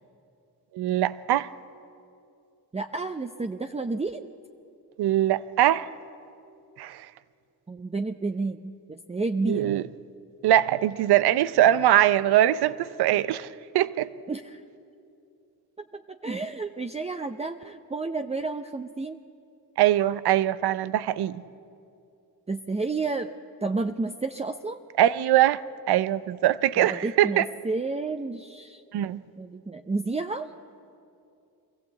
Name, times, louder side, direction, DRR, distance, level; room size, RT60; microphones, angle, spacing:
voice 1, 0.7-1.5 5.0-5.9 6.8-7.1 9.5-9.8 10.4-13.5 13.7-14.1 19.8-21.4 25.0-27.4 28.9-29.2, right 12 dB, 80° right, 0.7 m, -22 dB
voice 2, 2.7-4.3 7.7-9.7 14.3-14.6 15.8-19.2 22.5-24.8 26.8-28.8 29.4-30.5, right 3 dB, 15° right, 0.7 m, -31 dB
23.0 x 15.0 x 8.1 m
cardioid pair, 65°, 39 cm